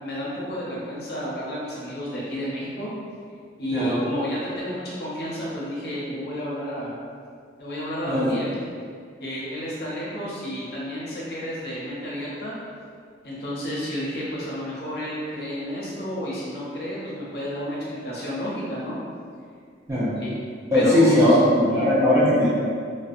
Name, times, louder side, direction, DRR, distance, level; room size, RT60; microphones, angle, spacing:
voice 1, 0.0-2.9 3.6-6.9 7.6-8.5 9.2-12.5 13.2-19.0 20.2-20.5 20.7-21.2 21.7-21.9, equal, 55° left, -7 dB, 0.7 m, -31 dB
voice 2, 20.7-22.5, left 1 dB, 15° right, -9 dB, 0.4 m, -19 dB
2.6 x 2.2 x 2.5 m, 2.1 s
head